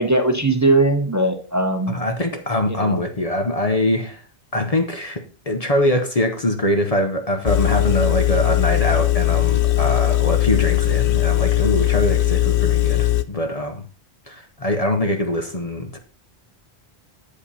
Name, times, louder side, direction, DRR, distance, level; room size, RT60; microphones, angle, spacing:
voice 1, 0.0-1.9 2.8-3.0, right 2 dB, 15° right, 0.8 m, -19 dB
voice 2, 1.9-4.2 4.5-13.8 14.3-16.0, left 1 dB, 35° left, 0.9 m, -23 dB
Engine, 7.5-13.2, left 17 dB, 80° left, 0.9 m, -19 dB
8.6 x 5.2 x 5.5 m
omnidirectional pair, 1.1 m